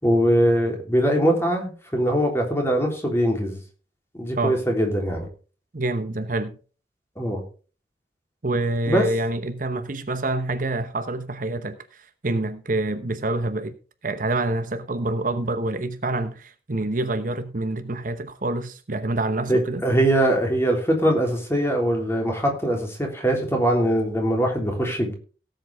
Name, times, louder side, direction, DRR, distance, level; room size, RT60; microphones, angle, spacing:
voice 1, 0.0-3.6 4.2-5.3 7.2-7.4 8.9-9.1 19.5-25.1, right 1 dB, 15° left, 3.6 m, -22 dB
voice 2, 5.7-6.6 8.4-13.8 14.0-19.8, right 2 dB, 50° right, 1.0 m, -27 dB
17.5 x 7.8 x 3.6 m
head